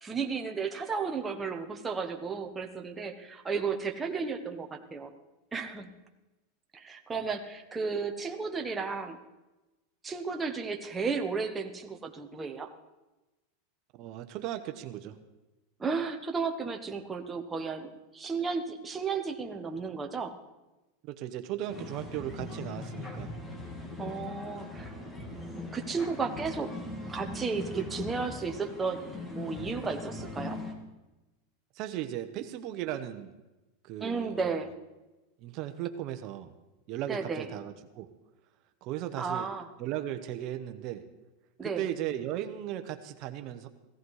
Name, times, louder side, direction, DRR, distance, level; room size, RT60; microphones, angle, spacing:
voice 1, 0.0-5.1 5.5-5.9 6.7-9.2 10.0-12.7 15.8-20.4 24.0-24.9 25.3-26.7 27.1-30.6 34.0-34.7 37.1-37.5 39.2-39.7 41.6-41.8, right 5 dB, 15° right, 4 dB, 1.1 m, -34 dB
voice 2, 14.0-15.2 21.0-23.3 31.7-33.3 33.8-34.6 35.4-36.5 36.9-38.1 38.8-39.5 39.8-41.1 41.6-43.7, right 12 dB, 45° right, 8 dB, 1.0 m, -36 dB
sound 1, 21.7-30.7, left 2 dB, 15° left, 2.1 m, -40 dB
16.5 x 14.0 x 4.8 m, 1.1 s
supercardioid pair, 140°, 0 cm